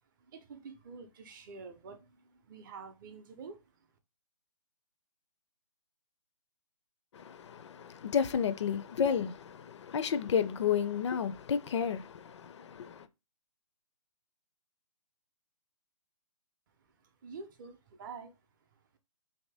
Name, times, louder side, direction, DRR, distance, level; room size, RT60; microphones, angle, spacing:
voice 1, 0.2-3.6 17.0-18.4, right 5 dB, 35° right, 0.5 m, -48 dB
voice 2, 7.1-13.1, left 7 dB, 50° left, 0.4 m, -32 dB
2.7 x 2.6 x 3.3 m
hypercardioid pair, 145°, 19 cm